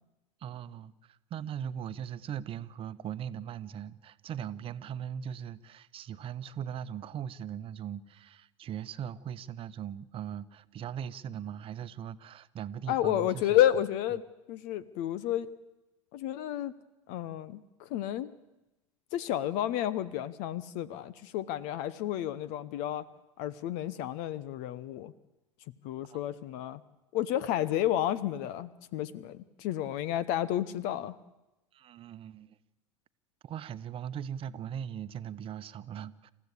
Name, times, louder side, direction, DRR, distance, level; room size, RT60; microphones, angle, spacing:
voice 1, 0.4-0.9 1.3-13.5 26.1-26.2 31.7-32.6 33.4-36.3, right 9 dB, 35° right, 13 dB, 1.0 m, -39 dB
voice 2, 12.9-14.2 14.5-15.5 16.1-16.7 17.1-18.3 19.1-23.1 23.4-25.1 25.8-26.8 27.1-31.2, left 12 dB, 55° left, 19 dB, 0.9 m, -31 dB
28.0 x 15.0 x 8.4 m, 1.0 s
hypercardioid pair, 85°, 16 cm